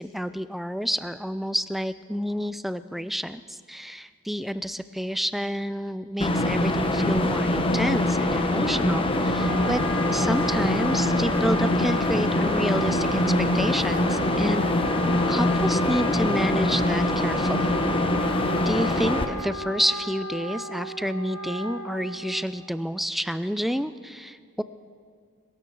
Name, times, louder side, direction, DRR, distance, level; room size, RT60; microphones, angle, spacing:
voice 1, 0.0-9.8 10.1-13.2 13.5-14.6 15.3-17.7 18.7-24.6, equal, ahead, 13 dB, 0.4 m, -29 dB
sound 1, 6.2-19.3, left 1 dB, 25° left, 1.0 m, -24 dB
Wind instrument woodwind instrument, 8.5-22.6, equal, 85° left, 1.2 m, -35 dB
22.5 x 13.0 x 4.7 m, 2.2 s
head